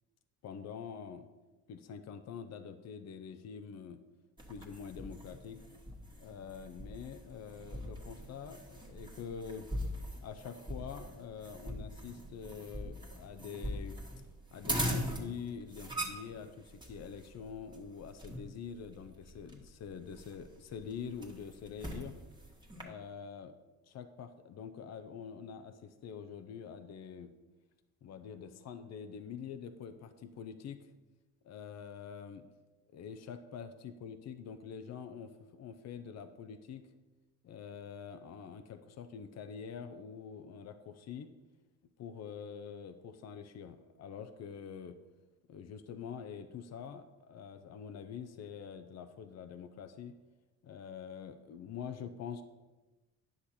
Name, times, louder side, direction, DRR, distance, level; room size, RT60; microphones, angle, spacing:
voice 1, 0.4-1.3 1.7-4.0 4.5-5.6 6.2-9.7 10.2-14.0 14.5-22.2 22.8-23.5 23.9-27.3 28.0-30.9 31.4-32.5 32.9-36.9 37.4-41.3 42.0-45.0 45.5-50.2 50.6-52.4, left 7 dB, 60° left, 9 dB, 0.7 m, -45 dB
sound 1, 4.4-22.8, equal, 15° right, 1.8 m, -42 dB
10.0 x 6.7 x 4.3 m, 1.1 s
cardioid pair, 90°, 30 cm